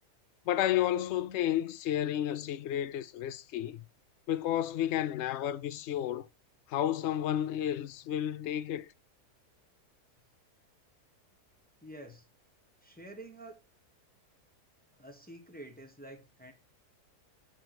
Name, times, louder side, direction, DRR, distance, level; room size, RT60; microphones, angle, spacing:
voice 1, 0.5-3.8 4.3-6.3 6.7-8.9, left 11 dB, 70° left, 0.7 m, -31 dB
voice 2, 11.8-12.3 12.8-13.6 14.9-16.5, right 1 dB, 5° left, 1.1 m, -48 dB
6.5 x 4.6 x 6.0 m
omnidirectional pair, 1.7 m